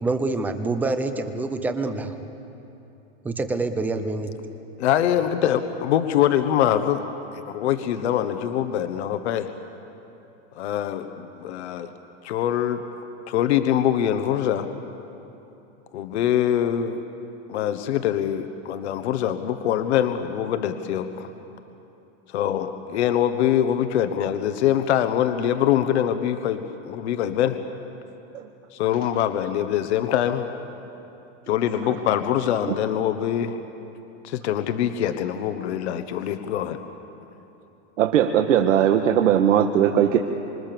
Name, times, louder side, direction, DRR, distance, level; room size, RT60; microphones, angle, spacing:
voice 1, 0.0-2.2 3.2-4.3, right 3 dB, 5° right, 8 dB, 0.6 m, -26 dB
voice 2, 4.8-7.0 7.3-9.5 10.5-11.9 12.2-12.8 13.3-14.7 15.9-17.0 17.5-21.3 22.3-27.6 28.7-30.5 31.5-33.6 34.2-36.8, left 10 dB, 60° left, 8 dB, 1.3 m, -24 dB
voice 3, 38.0-40.2, right 9 dB, 85° right, 5 dB, 1.6 m, -19 dB
26.5 x 26.0 x 7.0 m, 3.0 s
supercardioid pair, 175°, 37 cm